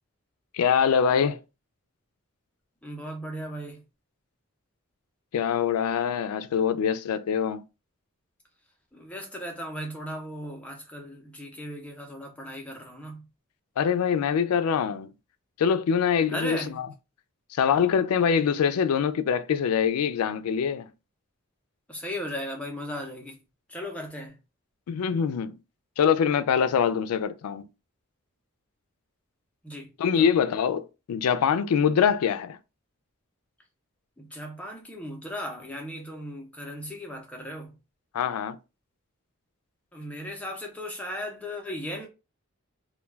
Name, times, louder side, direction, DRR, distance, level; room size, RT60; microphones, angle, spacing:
voice 1, 0.5-1.4 5.3-7.6 13.8-15.1 15.6-16.9 17.5-20.9 24.9-25.5 26.0-27.7 30.0-32.6 38.1-38.6, left 7 dB, 90° left, 0.3 m, -24 dB
voice 2, 2.8-3.8 8.9-13.2 16.3-16.8 21.9-23.4 23.7-24.4 29.6-29.9 30.2-30.3 34.2-37.7 39.9-42.1, equal, 5° left, 0.5 m, -37 dB
2.2 x 2.2 x 3.2 m
head